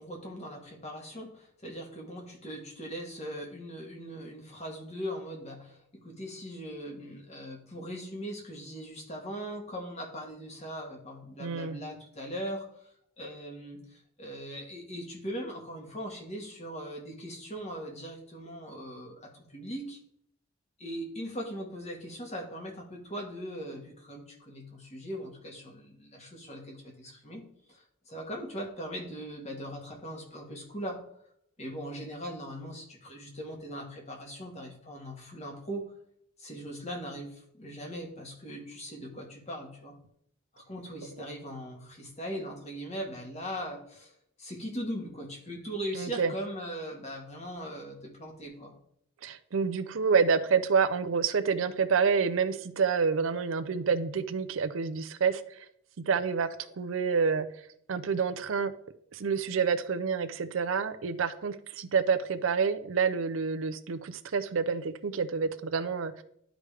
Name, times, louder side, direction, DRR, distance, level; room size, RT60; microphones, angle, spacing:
voice 1, 0.0-12.6 13.2-20.0 20.8-31.0 31.6-35.9 36.4-39.9 40.5-44.1 44.4-48.7, equal, 30° left, 0 dB, 1.6 m, -40 dB
voice 2, 11.4-11.8 45.9-46.3 49.2-55.4 56.1-56.5 56.8-57.5 57.9-58.7 59.1-66.2, right 5 dB, 70° right, 11 dB, 0.5 m, -28 dB
11.5 x 5.0 x 3.3 m, 0.70 s
head